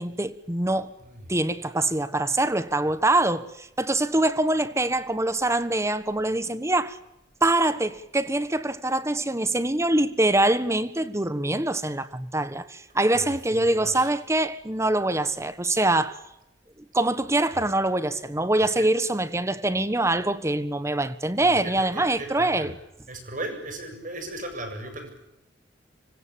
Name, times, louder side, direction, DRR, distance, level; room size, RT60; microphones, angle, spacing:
voice 1, 0.0-0.9 1.3-7.0 7.4-16.2 16.9-22.8, right 2 dB, 15° right, 1.4 m, -24 dB
voice 2, 13.0-14.1 18.6-18.9 21.4-22.7 23.1-25.2, right 1 dB, 45° right, 7.6 m, -37 dB
26.0 x 24.5 x 8.8 m
head